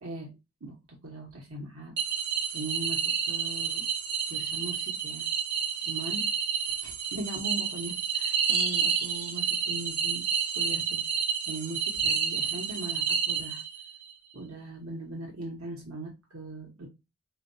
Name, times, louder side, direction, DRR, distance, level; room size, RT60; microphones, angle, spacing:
voice 1, 1.0-1.9 2.5-3.8 4.3-5.2 5.8-6.2 6.8-10.2 10.5-11.0 11.5-13.6 14.3-16.9, right 2 dB, 85° right, -1 dB, 1.1 m, -39 dB
sound 1, 2.0-13.9, right 7 dB, 55° right, 0.9 m, -30 dB
4.4 x 2.5 x 2.6 m, 0.24 s
head